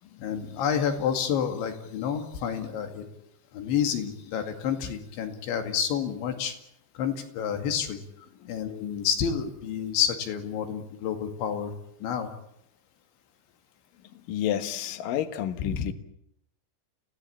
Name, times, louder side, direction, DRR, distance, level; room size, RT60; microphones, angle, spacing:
voice 1, 0.2-3.0 3.5-6.5 7.0-8.0 8.5-11.7 12.0-12.3 15.6-15.8, left 8 dB, 90° left, 6 dB, 4.7 m, -29 dB
voice 2, 14.3-15.9, left 10 dB, 65° left, 10 dB, 2.6 m, -30 dB
30.0 x 17.0 x 8.7 m, 0.76 s
omnidirectional pair, 5.1 m